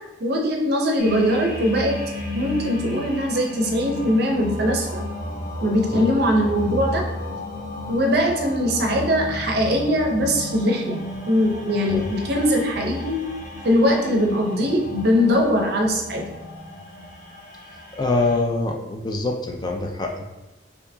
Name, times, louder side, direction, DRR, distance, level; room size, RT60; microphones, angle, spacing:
voice 1, 0.2-2.0 2.3-5.0 5.6-7.0 7.9-11.0 11.3-13.2 13.6-16.3, equal, 55° right, 2 dB, 0.6 m, -21 dB
sound 1, 1.0-18.4, left 1 dB, 55° left, 0.9 m, -33 dB
voice 2, 17.9-20.2, left 2 dB, 20° left, 2 dB, 0.3 m, -24 dB
4.4 x 2.8 x 2.6 m, 1.0 s
head